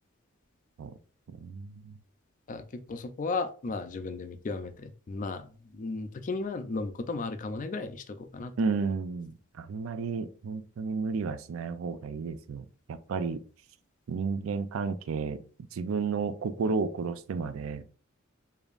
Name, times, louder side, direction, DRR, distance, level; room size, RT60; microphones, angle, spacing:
voice 1, 1.4-2.0 8.6-9.3 9.6-13.4 14.1-15.4 15.7-17.8, right 4 dB, 75° right, 0.4 m, -32 dB
voice 2, 2.9-8.5, left 3 dB, 40° left, 0.4 m, -35 dB
4.9 x 2.7 x 2.4 m
head